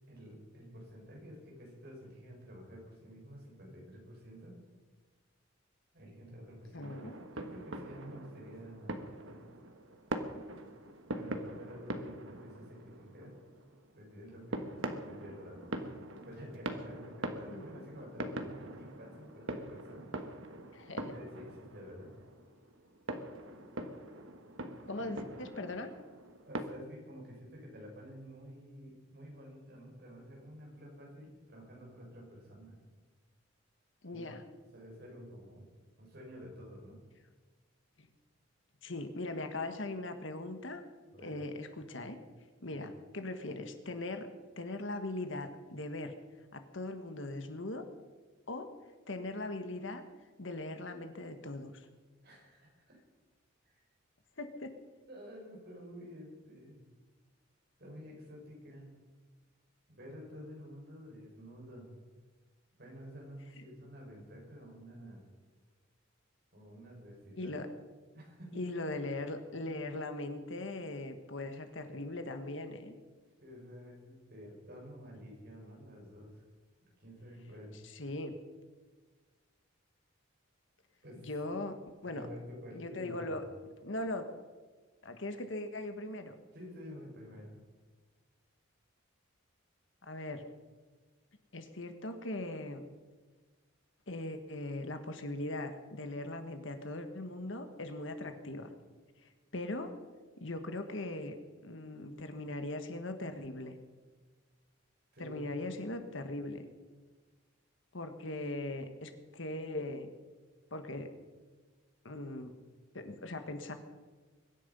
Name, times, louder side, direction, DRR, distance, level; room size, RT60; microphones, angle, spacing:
voice 1, 0.1-4.6 5.9-6.9 7.3-9.5 11.1-13.4 13.9-16.0 16.2-20.1 21.0-22.1 25.0-25.1 26.5-32.8 34.1-34.2 34.6-35.7 36.0-37.0 41.1-41.4 42.7-42.8 52.2-53.0 53.6-53.8 55.1-56.8 57.8-58.9 59.9-62.0 62.8-65.3 66.5-67.5 68.1-68.5 73.4-76.4 77.0-77.8 81.0-81.3 82.0-83.5 86.5-87.6 105.1-105.4, equal, 50° right, -2 dB, 6.1 m, -50 dB
voice 2, 6.7-7.2 17.5-17.9 20.7-21.1 24.9-25.9 34.0-34.4 38.0-38.1 38.8-40.8 41.2-42.2 42.6-44.3 44.6-46.1 46.5-47.9 48.5-48.7 49.1-50.0 50.4-51.9 54.4-54.7 63.6-63.7 67.4-67.7 68.5-72.9 77.8-78.3 81.3-81.7 82.0-82.3 82.7-83.4 83.8-84.3 85.0-86.3 90.0-90.4 91.5-92.9 94.1-98.7 99.5-99.9 100.4-101.4 101.6-103.8 105.2-106.6 107.9-110.1 110.7-111.1 112.0-112.5 112.9-113.7, left 2 dB, 65° left, 7 dB, 1.5 m, -40 dB
sound 1, 6.8-26.6, right 1 dB, 70° right, 1.4 m, -43 dB
23.0 x 10.5 x 5.5 m, 1.4 s
head